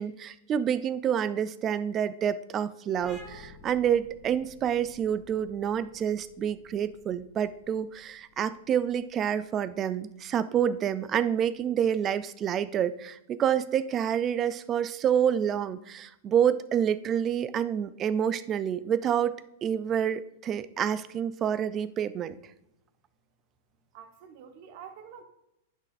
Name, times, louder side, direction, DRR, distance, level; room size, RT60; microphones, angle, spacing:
voice 1, 0.0-22.4, right 9 dB, 20° right, 15 dB, 0.3 m, -28 dB
sound 1, 3.0-10.3, left 2 dB, ahead, 2.5 m, -53 dB
voice 2, 23.9-25.2, right 7 dB, 45° right, 6 dB, 1.0 m, -47 dB
10.5 x 6.2 x 2.5 m, 0.83 s
supercardioid pair, 155°, 0 cm